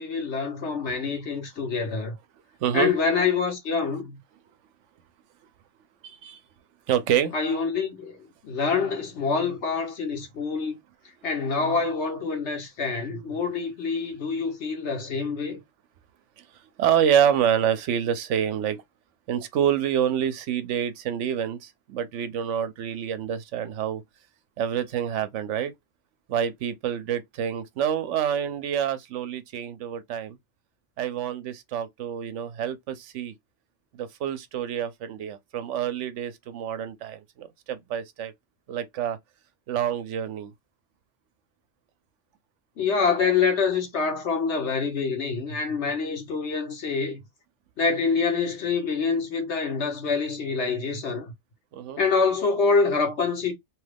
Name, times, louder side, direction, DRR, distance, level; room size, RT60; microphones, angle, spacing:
voice 1, 0.0-2.2 2.7-4.2 7.3-8.2 8.4-10.8 11.2-15.6 42.8-47.2 47.8-51.3 52.0-53.5, left 5 dB, 70° left, 1.3 m, -26 dB
voice 2, 2.6-2.9 6.0-6.4 6.9-7.3 16.4-16.5 16.8-18.8 19.3-24.0 24.6-25.7 26.3-30.4 31.0-33.3 33.9-38.3 38.7-39.2 39.7-40.5 51.7-52.0, right 9 dB, 80° right, 0.9 m, -27 dB
3.0 x 2.3 x 3.3 m
omnidirectional pair, 1.2 m